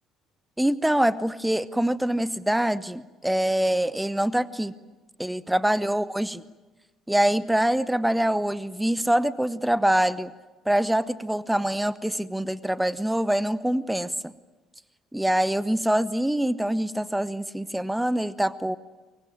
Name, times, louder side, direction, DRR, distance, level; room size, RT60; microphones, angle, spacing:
voice 1, 0.6-4.7 5.2-6.4 7.1-10.3 10.7-14.3 15.1-18.8, right 1 dB, 5° right, 17 dB, 0.9 m, -24 dB
24.0 x 23.5 x 9.2 m, 1.2 s
figure-of-eight pair, 50°, 0 cm